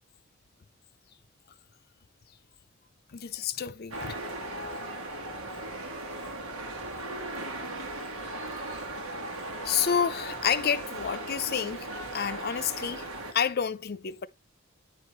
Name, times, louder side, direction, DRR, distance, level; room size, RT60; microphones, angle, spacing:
voice 1, 3.1-4.2 9.6-14.3, left 7 dB, 50° left, 0.5 m, -29 dB
sound 1, 3.9-13.3, right 2 dB, 85° right, 1.6 m, -37 dB
9.1 x 4.7 x 3.1 m
head